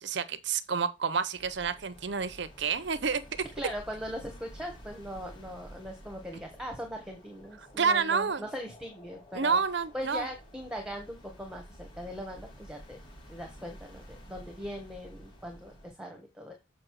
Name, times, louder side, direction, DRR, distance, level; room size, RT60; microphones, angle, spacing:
voice 1, 0.0-3.2 7.8-8.4 9.3-10.3, right 5 dB, 60° right, 0.7 m, -29 dB
sound 1, 1.3-15.9, equal, 25° left, 5.7 m, -51 dB
voice 2, 3.6-9.6 9.9-13.0 13.3-16.5, equal, 5° right, 1.4 m, -40 dB
7.7 x 5.6 x 4.7 m
head